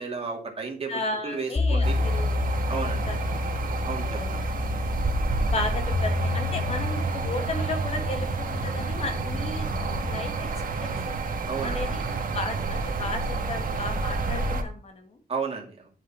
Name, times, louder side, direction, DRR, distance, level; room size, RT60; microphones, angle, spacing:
voice 1, 0.0-2.0 2.7-3.1 3.8-4.4 11.5-11.8 15.3-15.9, right 5 dB, 35° right, 1 dB, 2.4 m, -33 dB
voice 2, 0.9-2.4 3.1-3.2 3.4-3.6 4.0-4.6 5.5-9.7 10.1-11.2 11.6-12.0 12.3-15.2, left 2 dB, 40° left, 5 dB, 1.8 m, -34 dB
sound 1, 1.6-10.3, left 3 dB, 25° left, 0.8 m, -29 dB
sound 2, 1.8-14.6, right 4 dB, 60° right, 1.5 m, -30 dB
9.7 x 6.4 x 4.4 m, 0.38 s
wide cardioid pair, 175°, 16 cm